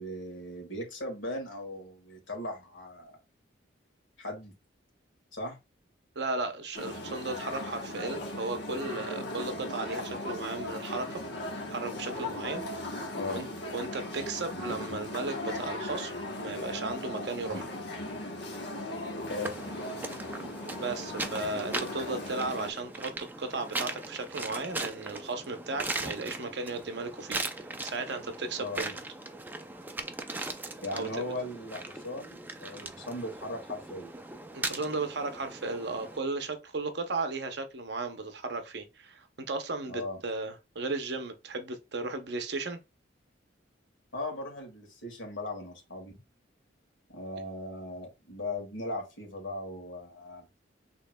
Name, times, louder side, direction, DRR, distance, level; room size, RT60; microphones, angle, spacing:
voice 1, 0.0-3.2 4.2-4.6 5.3-5.6 13.2-13.5 14.5-14.8 17.4-17.7 19.3-19.5 28.6-29.0 30.8-34.1 39.9-40.2 44.1-46.2 47.1-50.6, left 1 dB, 80° left, 2.0 m, -38 dB
voice 2, 6.2-11.2 11.7-13.5 13.7-16.1 16.4-17.6 20.7-28.9 30.9-31.1 34.5-42.8, right 3 dB, 60° right, 0.7 m, -35 dB
sound 1, 6.7-22.7, left 1 dB, 60° left, 1.1 m, -38 dB
sound 2, 19.4-36.2, right 2 dB, 10° right, 0.4 m, -39 dB
6.2 x 3.6 x 2.2 m
head